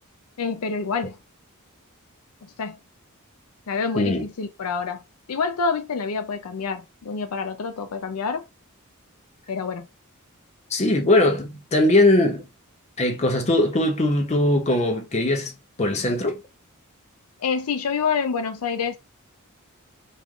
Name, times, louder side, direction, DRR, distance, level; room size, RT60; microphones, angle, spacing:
voice 1, 0.4-1.2 2.4-2.8 3.7-5.0 5.3-8.4 9.5-9.9 17.4-19.0, left 5 dB, 80° left, 0.5 m, -27 dB
voice 2, 10.7-12.5 13.0-15.5 15.8-16.4, left 1 dB, 30° left, 0.7 m, -20 dB
3.0 x 2.5 x 3.6 m
head